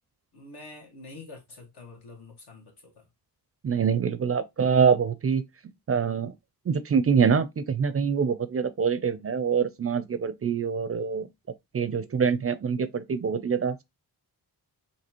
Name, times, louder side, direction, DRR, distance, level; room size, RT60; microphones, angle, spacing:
voice 1, 0.3-3.1, left 3 dB, 75° left, 1.8 m, -46 dB
voice 2, 3.6-5.4 5.9-6.3 6.7-11.3 11.7-13.8, right 6 dB, 35° right, 0.4 m, -25 dB
4.2 x 2.8 x 2.9 m
wide cardioid pair, 95°, 39 cm